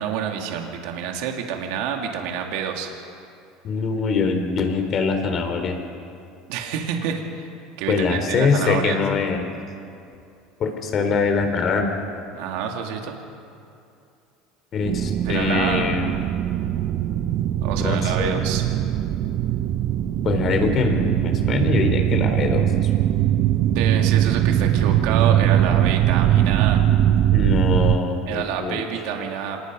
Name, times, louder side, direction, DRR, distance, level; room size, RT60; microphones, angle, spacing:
voice 1, 0.0-2.9 6.5-7.5 7.8-9.0 12.3-13.1 15.2-15.9 17.6-18.6 23.6-26.8 28.3-29.6, right 8 dB, 75° right, 2 dB, 2.5 m, -28 dB
voice 2, 3.6-5.8 7.9-9.5 10.6-12.0 14.7-16.1 17.8-18.4 20.2-22.9 27.3-28.8, left 4 dB, 40° left, 5 dB, 3.7 m, -23 dB
sound 1, 14.9-28.0, right 12 dB, 55° right, 1.0 m, -21 dB
26.5 x 20.0 x 5.4 m, 2.6 s
supercardioid pair, 105°, 0 cm